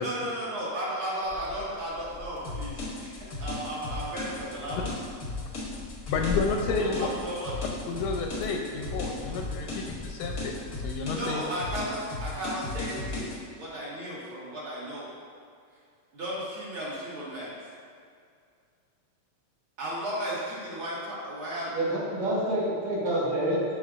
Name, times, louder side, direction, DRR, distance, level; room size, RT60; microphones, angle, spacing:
voice 1, 0.0-3.1 3.4-4.9 6.8-7.5 11.1-15.1 16.1-17.5 19.8-21.7, equal, 50° right, -8 dB, 2.2 m, -34 dB
sound 1, 1.2-11.7, left 4 dB, 20° left, 0.9 m, -42 dB
sound 2, 2.4-13.4, left 2 dB, 60° left, 0.9 m, -36 dB
voice 2, 6.1-7.1 7.9-11.4, left 4 dB, 80° left, 2 dB, 1.7 m, -31 dB
voice 3, 21.7-23.8, right 1 dB, 75° right, -7 dB, 2.8 m, -27 dB
12.0 x 4.8 x 2.5 m, 2.3 s
omnidirectional pair, 3.3 m